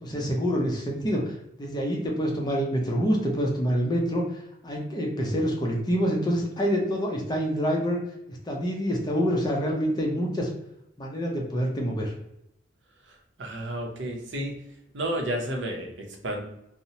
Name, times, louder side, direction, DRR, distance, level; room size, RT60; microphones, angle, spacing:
voice 1, 0.0-8.0 8.3-10.5 11.0-12.1, equal, 20° left, -1 dB, 0.5 m, -27 dB
voice 2, 13.1-14.6 14.9-16.4, right 1 dB, 70° right, 1 dB, 0.6 m, -32 dB
2.7 x 2.0 x 2.7 m, 0.82 s
head